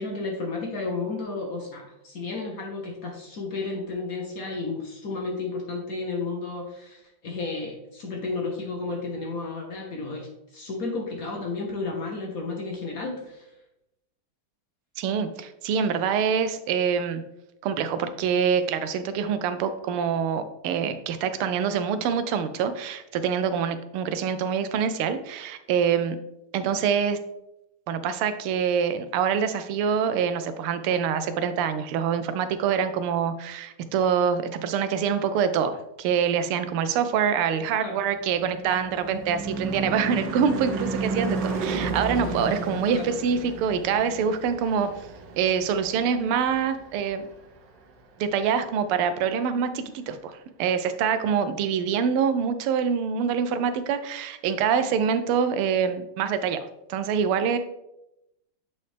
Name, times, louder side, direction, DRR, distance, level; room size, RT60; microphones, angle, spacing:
voice 1, 0.0-13.5 37.8-37.9 42.9-43.0, left 3 dB, 55° left, 0 dB, 1.1 m, -32 dB
voice 2, 15.0-17.2 17.6-26.2 26.5-27.2 27.9-44.9 45.4-47.2 48.2-56.6 56.9-57.6, right 7 dB, 85° right, 10 dB, 1.5 m, -25 dB
Car passing by / Truck / Engine, 38.1-46.8, right 3 dB, 65° right, 1.3 m, -32 dB
7.9 x 4.2 x 3.3 m, 0.86 s
omnidirectional pair, 2.4 m